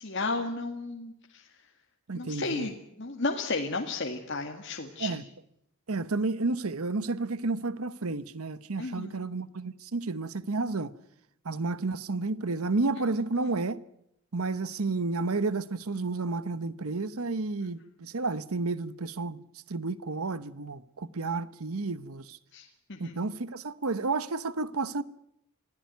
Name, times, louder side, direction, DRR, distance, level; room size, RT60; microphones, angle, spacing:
voice 1, 0.0-1.4 2.1-5.1 8.8-9.2 22.5-23.2, left 3 dB, 50° left, 2.0 m, -33 dB
voice 2, 2.1-2.7 5.0-5.2 5.9-10.9 11.4-13.8 14.3-22.4 23.0-25.0, right 3 dB, 75° right, 1.0 m, -31 dB
25.0 x 16.5 x 9.4 m
head